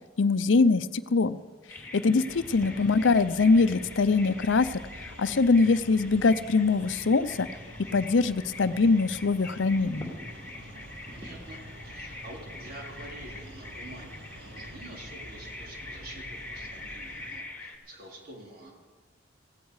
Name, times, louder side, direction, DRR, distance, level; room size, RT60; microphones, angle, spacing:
voice 1, 0.2-1.4 1.9-4.8 5.2-7.5 7.9-10.1, left 4 dB, 90° left, 15 dB, 0.6 m, -23 dB
Bird vocalization bird call bird song, 1.7-17.8, left 2 dB, 10° left, 2.2 m, -44 dB
sound 1, 2.3-17.4, equal, 80° right, 2.0 m, -47 dB
voice 2, 11.1-18.7, right 1 dB, 50° right, -1 dB, 3.9 m, -47 dB
16.5 x 16.0 x 4.8 m, 1.4 s
head